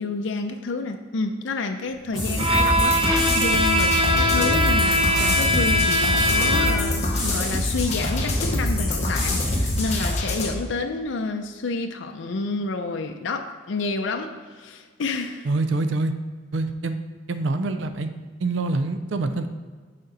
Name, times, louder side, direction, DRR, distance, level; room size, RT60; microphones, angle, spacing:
voice 1, 0.0-15.5, left 3 dB, 75° left, 5 dB, 0.5 m, -29 dB
sound 1, 2.1-10.1, equal, ahead, 2.0 m, -29 dB
Bowed string instrument, 2.4-7.0, equal, 25° right, 0.7 m, -21 dB
sound 2, 2.5-10.5, left 2 dB, 35° left, 0.9 m, -26 dB
voice 2, 15.4-16.1 16.5-17.0 17.3-18.1 18.4-19.5, right 2 dB, 75° right, 9 dB, 0.4 m, -25 dB
6.5 x 5.8 x 3.9 m, 1.5 s
head